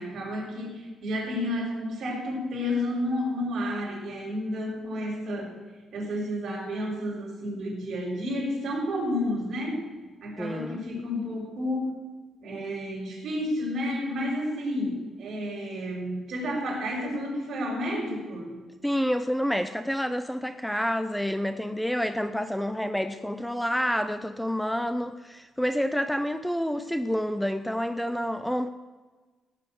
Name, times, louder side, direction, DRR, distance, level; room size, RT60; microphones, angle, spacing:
voice 1, 0.0-5.5 5.9-9.9 10.2-11.9 12.4-18.6, left 1 dB, 55° right, -2 dB, 5.2 m, -31 dB
voice 2, 10.4-10.8 18.8-28.7, equal, ahead, 10 dB, 0.5 m, -28 dB
17.0 x 6.8 x 8.0 m, 1.3 s
cardioid pair, 145°, 0 cm